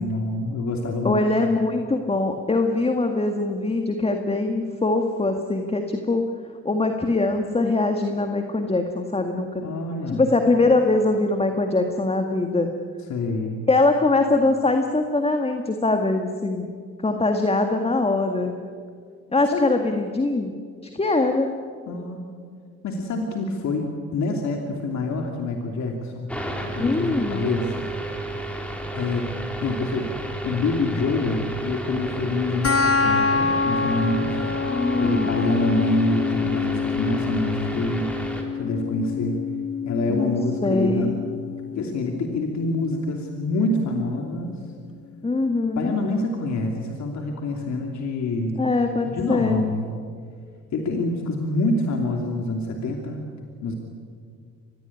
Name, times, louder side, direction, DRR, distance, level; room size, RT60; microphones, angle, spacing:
voice 1, 0.0-1.2 9.6-10.3 13.1-13.6 19.5-19.7 21.9-22.3 22.8-26.3 26.7-27.7 28.9-29.3 29.6-30.1 30.4-34.5 35.0-38.1 38.5-39.4 39.8-41.2 41.7-44.6 45.8-48.6 49.1-49.9 50.7-53.2 53.6-53.8, left 2 dB, 65° left, 2 dB, 3.0 m, -26 dB
voice 2, 1.0-6.3 6.7-9.6 10.1-12.7 13.7-16.7 17.0-18.5 19.3-20.5 20.9-21.5 26.8-27.4 34.6-35.4 40.1-40.4 40.6-41.2 45.2-45.9 48.6-49.6, left 2 dB, 20° left, 5 dB, 1.9 m, -22 dB
sound 1, 26.3-38.4, right 1 dB, 5° left, 4.4 m, -32 dB
sound 2, 32.6-43.6, left 5 dB, 50° left, 1.8 m, -27 dB
25.0 x 19.5 x 9.9 m, 2.2 s
cardioid pair, 90°, 30 cm